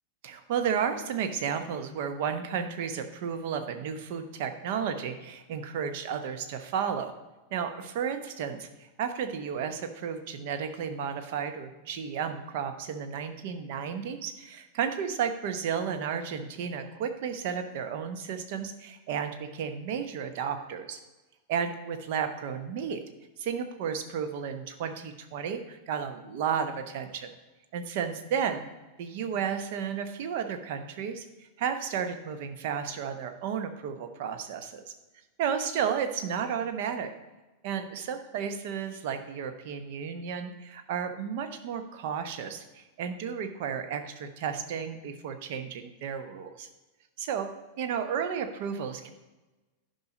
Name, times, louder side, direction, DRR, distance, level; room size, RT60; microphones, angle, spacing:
voice 1, 0.2-7.1 7.5-21.0 21.5-23.0 23.4-27.3 27.7-28.6 29.0-34.8 35.4-37.1 37.6-46.7 47.2-47.5 47.8-49.1, right 7 dB, 50° right, 8 dB, 0.9 m, -33 dB
10.5 x 5.5 x 5.1 m, 1.1 s
figure-of-eight pair, 90°, 0 cm